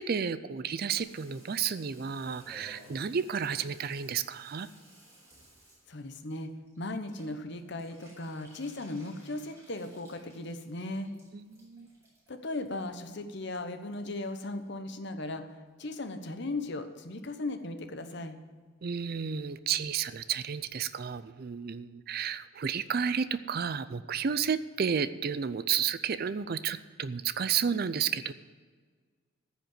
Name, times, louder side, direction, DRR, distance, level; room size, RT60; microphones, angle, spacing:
voice 1, 0.0-4.7 11.3-11.9 18.8-28.3, right 7 dB, 50° right, 14 dB, 0.4 m, -32 dB
Water tap faucet / Bathtub (filling or washing), 1.0-15.5 15.8-16.5 16.9-17.0 17.2-17.3 17.5-17.9 18.1-18.2 18.5-18.6 18.8-18.9 19.2-19.3 19.5-19.6 19.9-20.0 20.2-20.3 20.6-20.7, right 1 dB, 15° right, 4.7 m, -59 dB
voice 2, 5.9-11.1 12.3-18.4, left 2 dB, 55° left, 8 dB, 1.0 m, -37 dB
14.5 x 5.1 x 9.2 m, 1.5 s
head